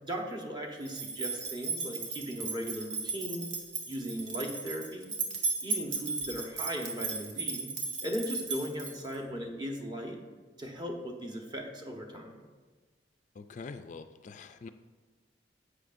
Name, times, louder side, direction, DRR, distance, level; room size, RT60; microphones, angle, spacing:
voice 1, 0.0-3.5 3.9-5.1 5.6-7.7 8.0-10.2 10.6-12.4, equal, 25° right, 1 dB, 1.1 m, -37 dB
sound 1, 0.9-9.2, right 4 dB, 85° right, 1.5 m, -36 dB
voice 2, 13.4-14.7, left 4 dB, 45° left, 9 dB, 0.3 m, -44 dB
11.0 x 8.1 x 2.6 m, 1.4 s
head